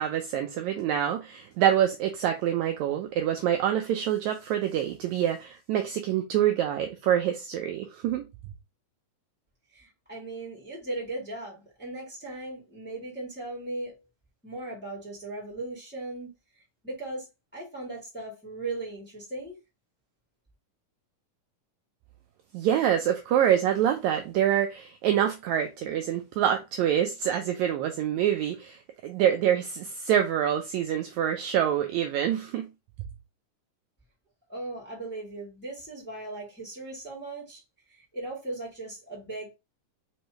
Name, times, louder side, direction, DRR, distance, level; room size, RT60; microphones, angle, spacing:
voice 1, 0.0-8.2 22.5-32.7, right 10 dB, 85° right, 1.6 m, -26 dB
voice 2, 9.7-14.0 14.4-16.3 16.8-17.3 17.5-19.5 34.5-37.6 37.9-39.5, right 2 dB, 5° left, 1.6 m, -38 dB
5.3 x 3.2 x 2.9 m
omnidirectional pair, 3.8 m